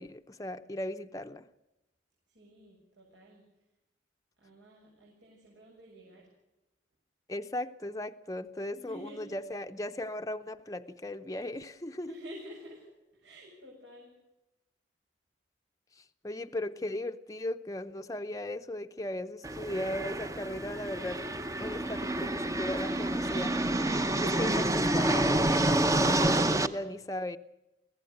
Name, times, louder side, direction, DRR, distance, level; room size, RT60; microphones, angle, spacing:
voice 1, 0.0-1.4 7.3-12.1 16.0-21.2 21.6-23.5 24.2-27.4, left 1 dB, 20° left, 7 dB, 0.7 m, -37 dB
voice 2, 2.3-3.4 4.4-6.3 8.7-9.4 12.1-14.1, equal, 85° right, -3 dB, 7.1 m, -50 dB
sound 1, 19.4-26.7, right 1 dB, 15° right, 0.8 m, -28 dB
23.5 x 16.5 x 8.0 m, 0.96 s
head